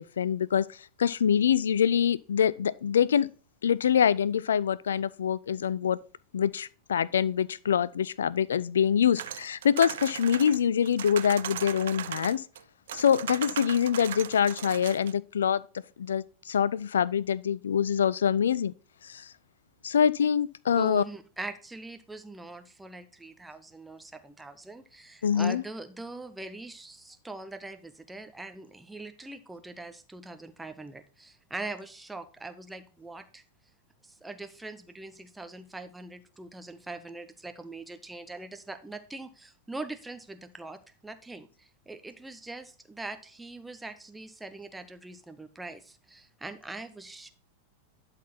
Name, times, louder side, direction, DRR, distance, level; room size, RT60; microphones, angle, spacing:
voice 1, 0.0-3.3 3.6-6.0 6.3-12.4 12.9-15.6 16.0-18.7 19.0-19.3 19.8-21.0 25.2-25.6, left 8 dB, 65° left, 0.3 m, -25 dB
sound 1, 9.2-12.6 12.9-15.1, right 11 dB, 60° right, 0.4 m, -38 dB
voice 2, 20.8-33.4 34.0-47.3, right 2 dB, 5° right, 0.7 m, -42 dB
11.5 x 4.2 x 4.1 m
figure-of-eight pair, 90°, 0 cm